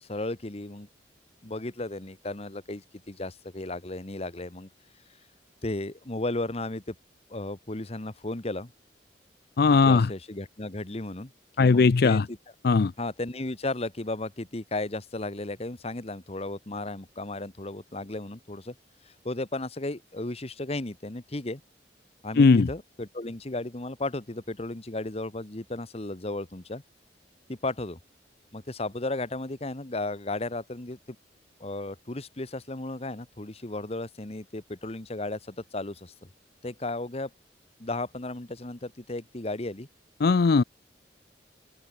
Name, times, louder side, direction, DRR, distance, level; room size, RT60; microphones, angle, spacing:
voice 1, 0.0-0.9 1.4-4.7 5.6-6.9 7.3-8.7 9.8-11.3 11.6-12.4 13.0-18.7 19.1-21.6 22.2-26.8 27.5-28.0 28.5-31.2 31.6-36.1 36.6-37.3 37.8-39.9, left 2 dB, 35° left, 1.3 m, -34 dB
voice 2, 9.6-10.1 11.6-12.3 12.6-12.9 22.4-22.7 40.2-40.6, left 4 dB, 60° left, 0.5 m, -19 dB
open air
head